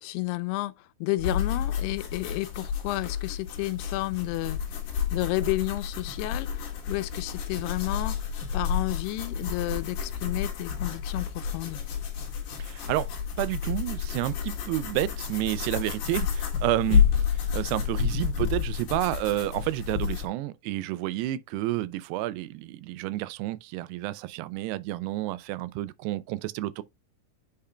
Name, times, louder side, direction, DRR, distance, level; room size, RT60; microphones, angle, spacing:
voice 1, 0.0-0.7 1.0-4.6 5.1-8.2 8.5-11.8, left 19 dB, 85° left, 2.6 m, -31 dB
sound 1, 1.2-20.3, left 7 dB, 60° left, 2.8 m, -30 dB
voice 2, 12.6-13.1 13.4-26.8, right 16 dB, 90° right, 2.7 m, -30 dB
8.6 x 5.6 x 2.2 m
omnidirectional pair, 4.7 m